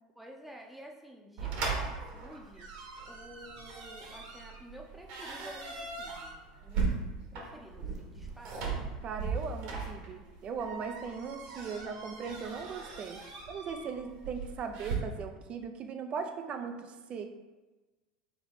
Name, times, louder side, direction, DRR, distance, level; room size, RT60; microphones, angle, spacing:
voice 1, 0.1-2.7 3.0-6.3 6.6-6.9 7.3-8.8, right 1 dB, 5° right, 0 dB, 0.8 m, -51 dB
sound 1, 1.4-15.0, right 4 dB, 65° right, 1.2 m, -38 dB
voice 2, 9.0-17.3, right 5 dB, 40° right, 6 dB, 0.5 m, -39 dB
3.9 x 3.5 x 3.9 m, 1.2 s
hypercardioid pair, 80°, 3 cm